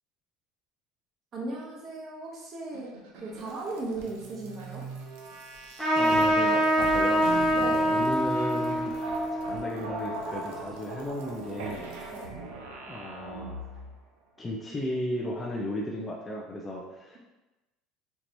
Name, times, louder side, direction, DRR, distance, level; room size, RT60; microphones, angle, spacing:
voice 1, 1.3-2.9 3.2-4.8 7.5-7.9 12.1-12.3, right 2 dB, 40° right, -3 dB, 1.0 m, -36 dB
sound 1, 2.7-14.0, right 2 dB, 85° right, 0.6 m, -40 dB
Trumpet, 5.8-10.8, equal, 5° right, 1.3 m, -25 dB
voice 2, 5.9-7.5 7.9-11.9 12.9-13.6 14.4-17.2, left 1 dB, 20° left, -3 dB, 0.5 m, -35 dB
4.5 x 2.9 x 2.6 m, 1.0 s
supercardioid pair, 110°, 0 cm